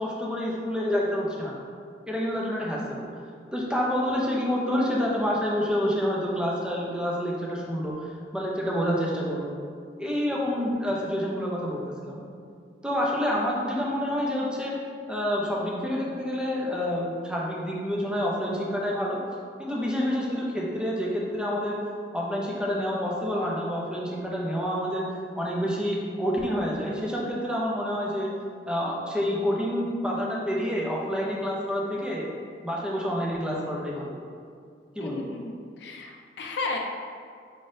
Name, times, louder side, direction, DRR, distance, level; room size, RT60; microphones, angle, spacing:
voice 1, 0.0-1.6 2.1-3.1 3.5-8.0 8.3-9.6 10.0-12.2 12.8-14.7 15.1-19.2 19.6-21.8 22.1-28.3 28.7-32.2 32.6-34.2 35.0-35.2, equal, 5° right, -4 dB, 0.6 m, -28 dB
voice 2, 35.0-36.8, left 3 dB, 70° left, 1 dB, 0.5 m, -34 dB
5.0 x 3.8 x 2.6 m, 2.2 s
head